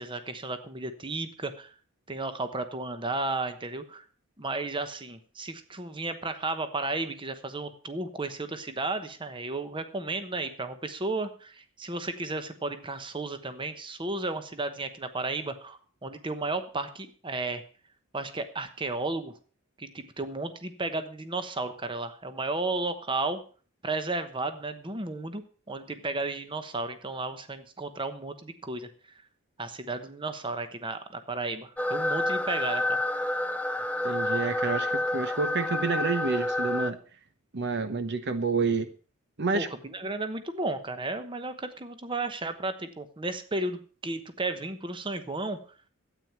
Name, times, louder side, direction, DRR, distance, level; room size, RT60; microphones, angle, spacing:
voice 1, 0.0-1.7 2.1-4.0 4.4-17.6 18.1-19.3 19.8-23.4 23.8-28.9 29.6-33.0 39.5-45.6, right 2 dB, 25° right, 10 dB, 1.0 m, -33 dB
sound 1, 31.8-36.9, left 1 dB, 5° left, 0.5 m, -29 dB
voice 2, 34.0-37.0 37.5-38.9 39.4-39.7, right 4 dB, 55° right, 10 dB, 0.9 m, -29 dB
13.0 x 9.0 x 5.8 m, 0.40 s
head